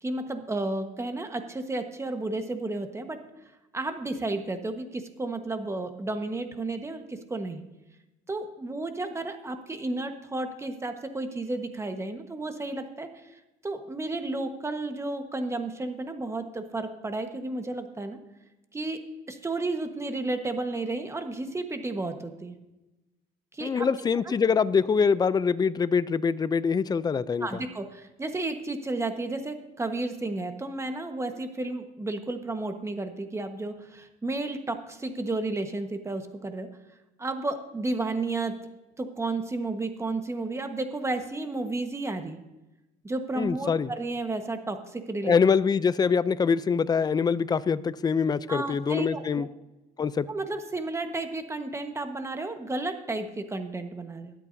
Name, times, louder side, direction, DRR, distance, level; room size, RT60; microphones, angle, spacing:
voice 1, 0.0-3.2 3.7-7.6 8.3-13.3 13.6-18.2 18.7-19.0 19.3-22.5 23.5-23.9 24.2-24.3 27.4-36.7 37.2-38.5 39.0-42.4 43.0-45.3 48.5-49.5 50.3-54.3, right 2 dB, 15° right, 6 dB, 1.3 m, -32 dB
voice 2, 23.6-27.6 43.4-43.9 45.2-49.5 50.0-50.3, left 6 dB, 25° left, 17 dB, 0.4 m, -24 dB
22.5 x 8.3 x 2.7 m, 1.0 s
cardioid pair, 110°, 17 cm